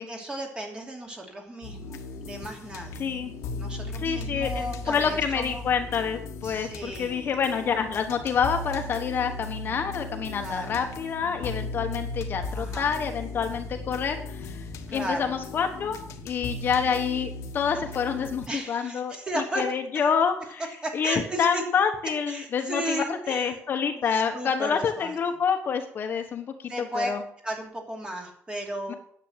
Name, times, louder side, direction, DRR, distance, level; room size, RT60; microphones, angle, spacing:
voice 1, 0.0-3.1 3.5-5.7 6.4-7.3 10.4-10.8 12.5-12.9 14.9-15.3 18.5-19.7 20.8-21.6 22.3-23.6 23.9-25.1 26.7-27.1 27.4-29.0, right 1 dB, 15° right, 1 dB, 2.9 m, -34 dB
sound 1, 1.6-18.5, left 3 dB, 80° left, 1.3 m, -37 dB
voice 2, 3.0-3.3 3.9-14.6 14.9-16.0 16.2-20.6 20.9-27.2 28.9-29.0, left 6 dB, 45° left, 5 dB, 1.2 m, -27 dB
10.5 x 8.2 x 7.4 m, 0.62 s
cardioid pair, 155°, 5 cm